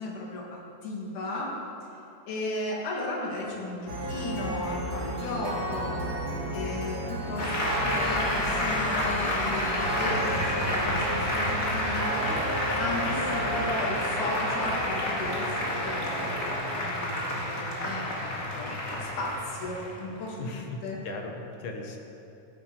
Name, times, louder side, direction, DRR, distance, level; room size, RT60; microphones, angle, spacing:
voice 1, 0.0-1.6 2.3-6.1 6.5-12.2 12.8-21.0, left 2 dB, 85° left, -2 dB, 3.2 m, -35 dB
sound 1, 3.9-17.1, right 1 dB, 75° right, 4.8 m, -34 dB
Applause, 7.4-20.4, left 1 dB, 25° left, 1.9 m, -30 dB
voice 2, 20.4-20.8 21.0-22.0, left 3 dB, 60° left, 2 dB, 1.3 m, -37 dB
15.5 x 9.9 x 4.4 m, 2.9 s
omnidirectional pair, 3.5 m